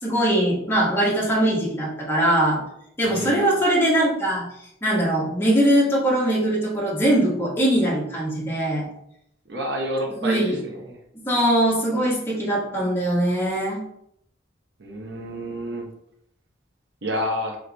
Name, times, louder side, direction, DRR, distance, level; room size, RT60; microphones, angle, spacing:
voice 1, 0.0-2.6 3.0-4.4 4.8-8.9 10.1-10.6 11.3-13.8, right 1 dB, 10° left, -6 dB, 1.0 m, -21 dB
voice 2, 3.0-3.5 9.5-11.0 14.8-15.9 17.0-17.6, equal, 60° right, 0 dB, 0.9 m, -29 dB
3.2 x 3.0 x 3.9 m, 0.73 s
head